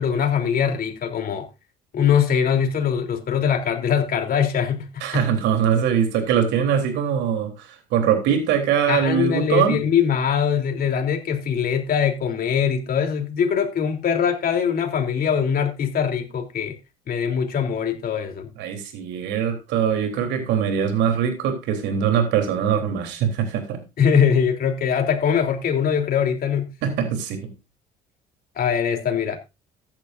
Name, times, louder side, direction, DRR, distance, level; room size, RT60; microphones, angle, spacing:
voice 1, 0.0-1.5 1.9-5.0 8.9-16.7 17.1-18.5 24.0-26.6 28.5-29.4, left 7 dB, 55° left, 3.4 m, -22 dB
voice 2, 5.0-9.8 18.6-23.8 26.8-27.5, right 8 dB, 75° right, 3.6 m, -22 dB
14.5 x 10.5 x 2.6 m
supercardioid pair, 70°, 18 cm